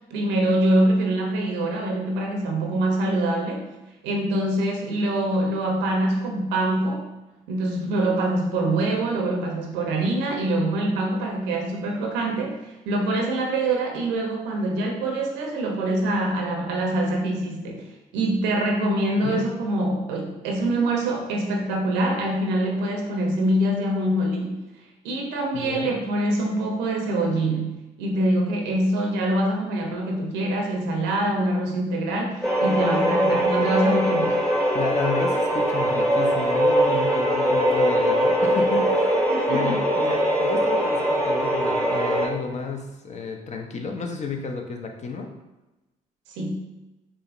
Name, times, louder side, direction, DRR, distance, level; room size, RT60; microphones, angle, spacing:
voice 1, 0.1-3.7 4.0-7.0 7.5-17.9 18.1-24.6 25.0-34.4 39.3-39.8 46.3-46.6, right 1 dB, 80° right, 1 dB, 0.7 m, -24 dB
voice 2, 25.5-25.9 34.7-39.2 39.5-45.3, left 4 dB, 40° left, 3 dB, 0.6 m, -31 dB
sound 1, 32.4-42.3, right 1 dB, ahead, 0.9 m, -22 dB
4.8 x 2.1 x 2.5 m, 1.0 s
hypercardioid pair, 55°, 18 cm